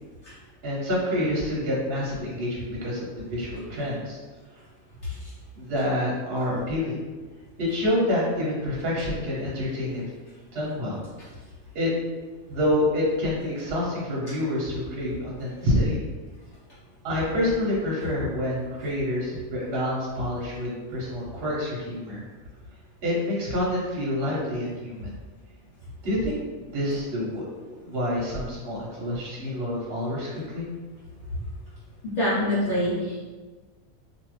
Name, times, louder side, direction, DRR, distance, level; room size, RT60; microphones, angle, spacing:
voice 1, 0.6-4.2 5.6-7.0 7.6-10.0 10.5-11.0 11.7-11.9 12.5-16.0 17.0-22.2 23.0-25.1 26.0-30.7, left 1 dB, 50° right, -5 dB, 0.9 m, -27 dB
voice 2, 32.2-33.2, left 1 dB, 60° left, -10 dB, 1.0 m, -24 dB
2.4 x 2.4 x 3.1 m, 1.3 s
omnidirectional pair, 1.5 m